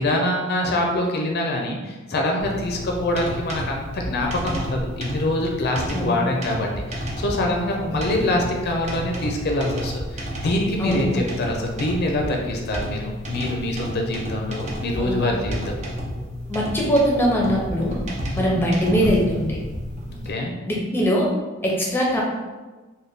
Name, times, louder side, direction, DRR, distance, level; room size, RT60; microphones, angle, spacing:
voice 1, 0.0-15.7 18.3-18.7 20.1-20.5, left 1 dB, 50° left, 0 dB, 0.5 m, -25 dB
sound 1, 2.4-20.3, equal, 35° right, 0.8 m, -31 dB
voice 2, 16.5-18.0 18.3-19.6 20.7-21.3 21.6-22.2, equal, 10° left, -3 dB, 0.7 m, -21 dB
3.4 x 2.2 x 3.9 m, 1.2 s
head